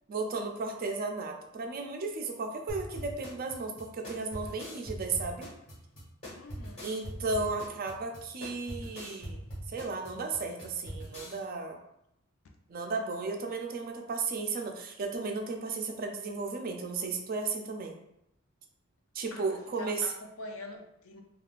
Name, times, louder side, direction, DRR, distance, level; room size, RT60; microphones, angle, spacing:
voice 1, 0.1-5.5 6.8-11.8 12.7-18.0 19.1-20.1, right 3 dB, 45° right, 3 dB, 0.4 m, -34 dB
sound 1, 2.7-11.4, equal, 30° left, 1.3 m, -42 dB
voice 2, 6.3-6.9 19.3-21.2, left 2 dB, 80° left, 3 dB, 0.5 m, -45 dB
3.6 x 2.3 x 2.4 m, 0.80 s
head